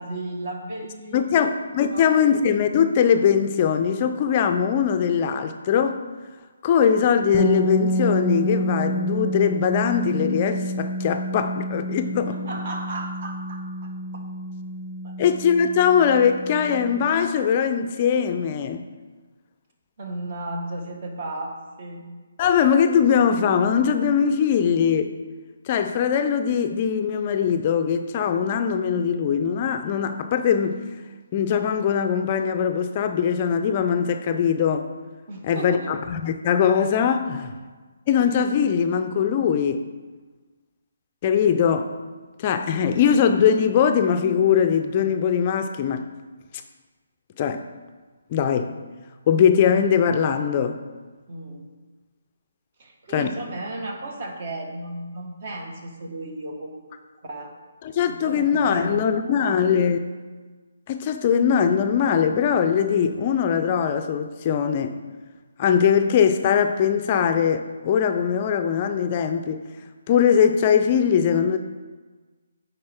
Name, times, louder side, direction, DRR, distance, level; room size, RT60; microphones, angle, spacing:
voice 1, 0.0-1.4 1.9-2.1 12.3-14.2 15.0-15.2 20.0-22.0 35.3-35.9 51.3-51.7 52.8-56.9 57.2-57.5 58.1-59.5, right 1 dB, 45° right, 1.3 m, -35 dB
voice 2, 1.1-6.0 6.6-12.4 15.2-18.9 22.4-25.1 25.7-30.8 31.3-34.9 35.4-37.5 38.1-39.9 41.2-41.9 42.4-46.1 47.4-47.6 48.3-48.7 49.3-50.8 53.1-53.3 57.8-60.0 60.9-65.0 65.6-69.6 70.1-71.6, left 7 dB, 35° left, 0.4 m, -21 dB
sound 1, 7.3-17.1, right 1 dB, 5° left, 0.8 m, -28 dB
9.3 x 4.2 x 3.5 m
figure-of-eight pair, 150°, 0 cm